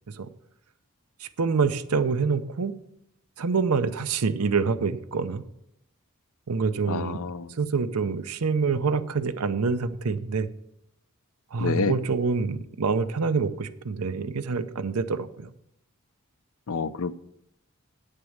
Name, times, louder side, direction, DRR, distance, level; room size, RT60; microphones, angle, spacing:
voice 1, 1.2-2.7 3.4-5.4 6.5-7.2 7.6-10.5 11.5-15.5, right 4 dB, 85° right, 12 dB, 0.7 m, -26 dB
voice 2, 6.9-7.5 11.6-11.9 16.7-17.1, left 4 dB, 70° left, 14 dB, 0.5 m, -28 dB
8.9 x 6.7 x 7.2 m, 0.76 s
head